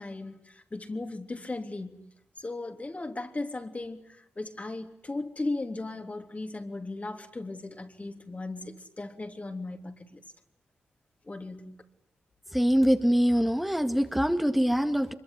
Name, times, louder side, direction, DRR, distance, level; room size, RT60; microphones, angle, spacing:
voice 1, 0.0-10.2 11.2-11.8, left 2 dB, 35° left, 3.3 m, -37 dB
voice 2, 12.5-15.1, equal, 5° right, 2.1 m, -24 dB
25.0 x 23.0 x 9.8 m
supercardioid pair, 45°, 4 cm